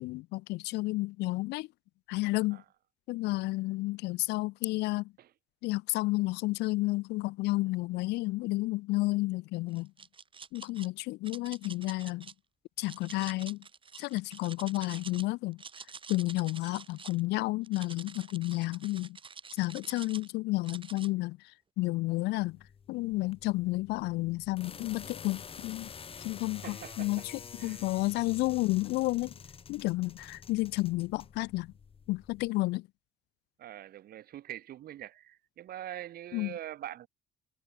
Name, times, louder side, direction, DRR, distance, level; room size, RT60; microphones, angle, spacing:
voice 1, 0.0-1.7 2.1-2.6 3.1-5.1 5.6-9.9 10.5-12.3 12.8-13.6 14.0-15.6 16.1-19.2 19.6-21.4 21.8-22.6 22.9-25.9 26.2-27.3 27.6-29.3 29.7-31.7 32.1-32.9 36.3-36.5, left 20 dB, 80° left, 0.5 m, -31 dB
sound 1, 9.7-10.9 11.2-12.3 12.8-15.3 15.5-17.2 17.6-20.3 20.6-21.1, right 5 dB, 30° right, 3.1 m, -48 dB
sound 2, 22.4-32.5, left 6 dB, 35° left, 1.9 m, -48 dB
voice 2, 26.6-27.3 27.6-27.9 33.6-37.1, right 12 dB, 65° right, 3.3 m, -44 dB
cardioid pair, 110°, 17 cm